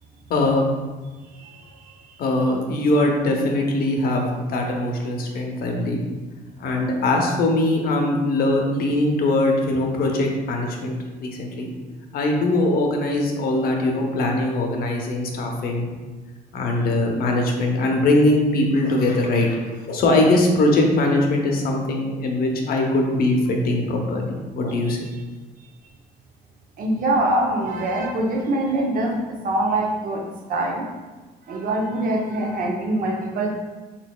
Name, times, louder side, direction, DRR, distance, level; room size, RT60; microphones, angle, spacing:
voice 1, 0.3-0.6 2.2-6.0 6.6-11.7 12.1-15.9 16.5-19.6 19.8-25.0, left 2 dB, 65° left, 1 dB, 0.7 m, -21 dB
voice 2, 1.4-1.7 24.9-25.0 26.8-30.2 30.5-30.9 31.5-33.6, right 1 dB, 55° right, 0 dB, 0.8 m, -24 dB
4.0 x 4.0 x 2.2 m, 1.3 s
cardioid pair, 110°, 17 cm